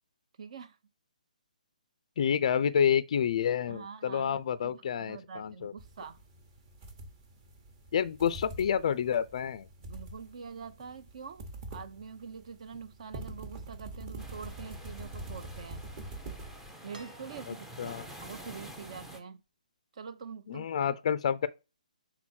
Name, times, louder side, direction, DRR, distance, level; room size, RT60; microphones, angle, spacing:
voice 1, 0.4-0.8 3.7-6.2 9.8-15.8 16.8-19.4 19.9-20.7, right 6 dB, 45° right, 0.8 m, -45 dB
voice 2, 2.2-5.7 7.9-9.7 17.8-18.0 20.5-21.5, left 8 dB, 45° left, 0.4 m, -28 dB
sound 1, 5.8-16.7, right 2 dB, 25° right, 1.0 m, -45 dB
sound 2, 14.2-19.2, right 1 dB, 5° right, 0.6 m, -48 dB
sound 3, 16.9-17.9 19.5-19.6, right 2 dB, 85° right, 1.3 m, -54 dB
6.1 x 3.9 x 4.4 m
hypercardioid pair, 165°, 5 cm